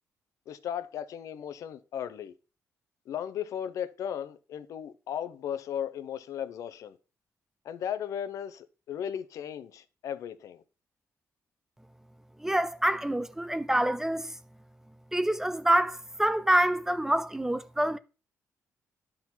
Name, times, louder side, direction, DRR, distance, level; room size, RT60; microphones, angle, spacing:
voice 1, 0.5-2.3 3.1-7.0 7.6-10.6, left 9 dB, 70° left, 0.7 m, -36 dB
voice 2, 12.4-14.3 15.1-18.0, right 1 dB, 5° right, 0.4 m, -26 dB
11.0 x 3.8 x 4.4 m
cardioid pair, 145°, 6 cm